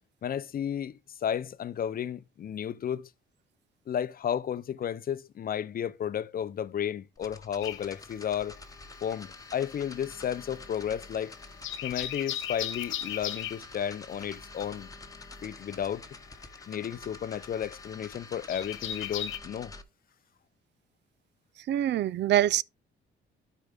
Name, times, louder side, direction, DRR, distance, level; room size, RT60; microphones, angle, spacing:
voice 1, 0.2-3.1 3.9-8.6 9.0-11.3 11.8-14.9 15.4-16.0 16.7-19.7, left 9 dB, 45° left, 0.6 m, -33 dB
sound 1, 7.2-19.8, left 3 dB, 15° left, 1.1 m, -48 dB
sound 2, 7.6-9.0 9.3-19.4, left 11 dB, 80° left, 0.9 m, -38 dB
voice 2, 21.7-22.6, right 12 dB, 65° right, 0.4 m, -24 dB
12.0 x 4.6 x 3.5 m
cardioid pair, 90°, 20 cm